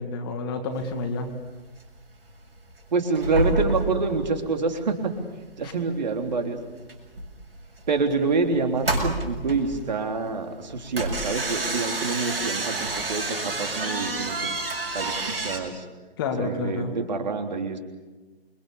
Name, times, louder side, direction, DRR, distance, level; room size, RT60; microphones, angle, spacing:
voice 1, 0.0-1.3 5.6-5.7 16.2-16.9, left 3 dB, 20° left, 5 dB, 2.0 m, -29 dB
sound 1, 0.7-0.8 1.2-1.5 1.8-2.0 2.2-2.7 3.0-5.8 6.1-6.3 6.7-15.6, right 2 dB, 65° right, 7.0 m, -29 dB
voice 2, 2.9-5.1 5.6-6.6 7.9-14.6 14.9-15.9 16.4-17.8, right 4 dB, 45° right, 5 dB, 3.6 m, -27 dB
28.5 x 23.5 x 7.0 m, 1.2 s
figure-of-eight pair, 140°, 32 cm